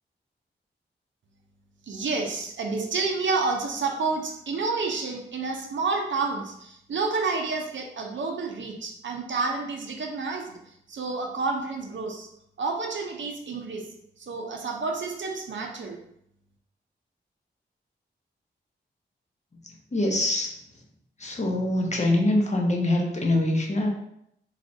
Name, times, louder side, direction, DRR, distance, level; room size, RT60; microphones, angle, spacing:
voice 1, 1.9-10.6 10.9-12.3 12.6-13.8 14.2-16.0, right 4 dB, 65° right, 2 dB, 0.6 m, -29 dB
voice 2, 19.9-20.5 21.2-23.9, left 1 dB, 35° left, 0 dB, 0.8 m, -24 dB
3.2 x 2.4 x 2.6 m, 0.74 s
cardioid pair, 40°, 20 cm